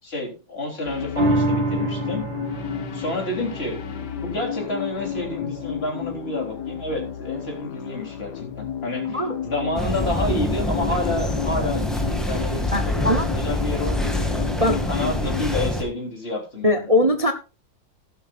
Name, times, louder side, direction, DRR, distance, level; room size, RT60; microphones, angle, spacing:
voice 1, 0.0-2.2 2.9-16.8, left 1 dB, 35° left, 1 dB, 4.0 m, -30 dB
sound 1, 0.9-15.4, left 9 dB, 70° left, 1.6 m, -32 dB
sound 2, 1.2-7.8 8.3-8.4, right 2 dB, 85° right, 2.7 m, -29 dB
sound 3, 9.8-15.8, left 1 dB, ahead, 2.2 m, -25 dB
voice 2, 12.7-13.3 14.6-14.8 16.6-17.3, left 1 dB, 30° right, 8 dB, 0.6 m, -20 dB
15.5 x 11.5 x 2.5 m, 0.31 s
omnidirectional pair, 1.9 m